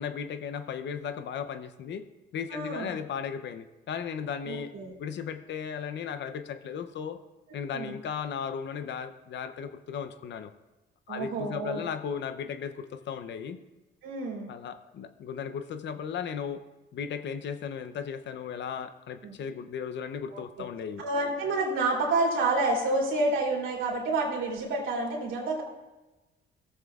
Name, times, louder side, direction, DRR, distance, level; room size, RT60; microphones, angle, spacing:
voice 1, 0.0-2.0 2.3-4.7 5.0-7.2 7.5-10.5 11.1-13.6 14.5-16.6 16.9-21.0, left 7 dB, 65° left, 11 dB, 0.6 m, -36 dB
voice 2, 2.5-2.9 4.5-4.9 7.7-7.9 11.1-11.9 14.0-14.5 19.2-19.3 20.3-20.4 21.0-25.6, right 2 dB, 85° right, -2 dB, 2.5 m, -29 dB
16.5 x 7.3 x 2.4 m, 1.1 s
cardioid pair, 90°, 20 cm